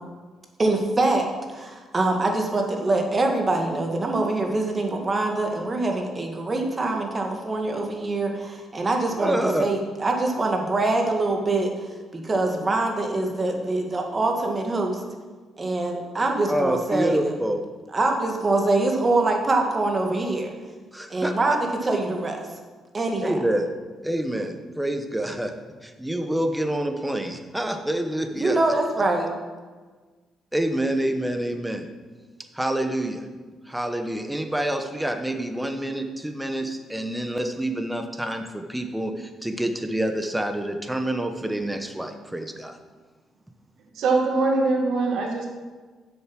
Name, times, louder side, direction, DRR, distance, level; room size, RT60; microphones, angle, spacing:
voice 1, 0.6-11.9 12.1-15.0 15.6-17.3 17.9-20.5 21.1-22.4 22.9-23.4 28.4-29.3, right 2 dB, 30° right, 2 dB, 1.7 m, -24 dB
voice 2, 9.2-9.6 16.5-17.6 20.9-21.3 23.2-23.7 24.0-25.5 25.8-28.6 30.5-31.9 32.5-33.2 33.7-42.8, right 1 dB, 5° right, 6 dB, 1.0 m, -27 dB
voice 3, 43.9-45.5, right 3 dB, 75° right, 1 dB, 1.8 m, -22 dB
7.9 x 7.0 x 6.0 m, 1.4 s
cardioid pair, 90°, 0 cm